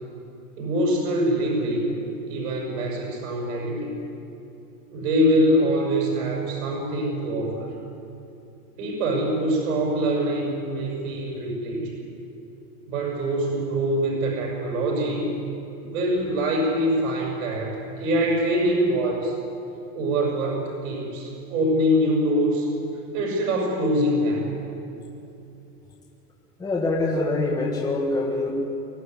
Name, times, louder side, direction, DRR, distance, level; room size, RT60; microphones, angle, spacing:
voice 1, 0.6-1.8 2.2-4.0 4.9-7.7 8.8-11.9 12.9-15.3 15.8-19.3 19.9-22.7 23.1-24.5, equal, 60° right, -2 dB, 6.6 m, -24 dB
voice 2, 26.6-28.5, left 2 dB, 10° left, -3 dB, 1.6 m, -24 dB
23.5 x 15.5 x 9.6 m, 2.8 s
supercardioid pair, 170°, 48 cm